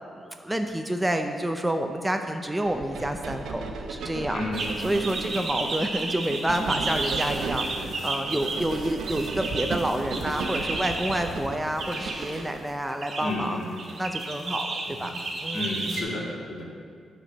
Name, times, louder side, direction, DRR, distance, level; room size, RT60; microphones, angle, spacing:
voice 1, 0.2-3.6 3.9-4.4 4.8-13.6 14.0-14.7 15.0-15.1 15.4-15.7, right 1 dB, 10° right, 5 dB, 0.4 m, -28 dB
sound 1, 2.6-12.6, right 4 dB, 85° right, 0.7 m, -35 dB
sound 2, 4.5-11.2 11.8-12.5 12.9-13.2 13.8-16.0, right 3 dB, 50° right, 1.2 m, -32 dB
voice 2, 5.0-5.4 7.7-8.6 13.2-13.8 14.9-15.1 15.5-16.6, left 2 dB, 65° left, -4 dB, 2.2 m, -33 dB
9.8 x 4.4 x 6.1 m, 2.1 s
cardioid pair, 130°, 0 cm